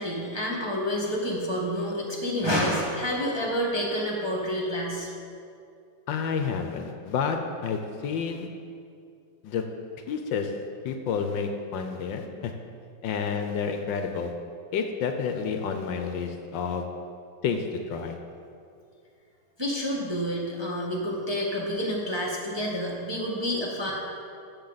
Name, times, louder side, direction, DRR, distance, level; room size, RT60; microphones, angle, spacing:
voice 1, 0.0-5.1 19.6-23.9, equal, 15° right, -4 dB, 1.0 m, -28 dB
voice 2, 6.1-8.5 9.4-9.6 10.1-10.5 10.8-12.5 13.0-14.3 14.7-16.8 17.4-18.2, left 6 dB, 75° left, 5 dB, 1.4 m, -29 dB
14.0 x 7.3 x 4.0 m, 2.4 s
omnidirectional pair, 2.2 m